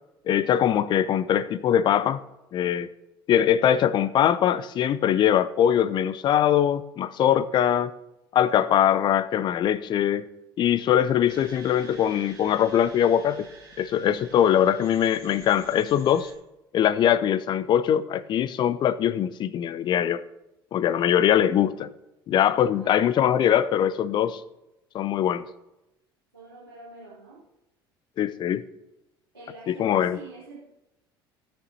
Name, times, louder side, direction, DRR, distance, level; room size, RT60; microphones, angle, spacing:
voice 1, 0.3-2.2 2.5-2.9 3.3-7.9 8.3-10.3 10.6-13.5 13.8-16.3 16.7-20.2 20.7-21.9 22.3-24.4 24.9-25.5 28.2-28.6 29.7-30.2, left 10 dB, 40° left, 17 dB, 0.6 m, -22 dB
sound 1, 11.3-16.3, right 3 dB, 90° left, 3.4 m, -49 dB
voice 2, 22.7-23.5 26.3-27.4 29.3-30.6, right 2 dB, 85° right, -9 dB, 2.1 m, -45 dB
17.0 x 6.6 x 2.8 m, 0.94 s
figure-of-eight pair, 60°, 12 cm